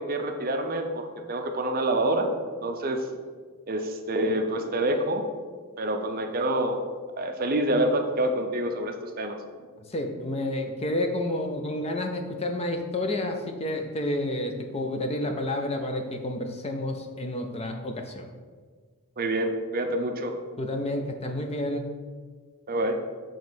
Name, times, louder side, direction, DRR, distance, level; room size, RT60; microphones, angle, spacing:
voice 1, 0.0-3.1 3.7-5.2 5.8-6.8 7.2-9.4 19.2-20.3 22.7-23.0, right 1 dB, 40° right, 5 dB, 0.6 m, -27 dB
voice 2, 9.9-18.3 20.6-21.9, left 1 dB, 30° left, 4 dB, 0.6 m, -30 dB
7.0 x 3.2 x 6.0 m, 1.5 s
head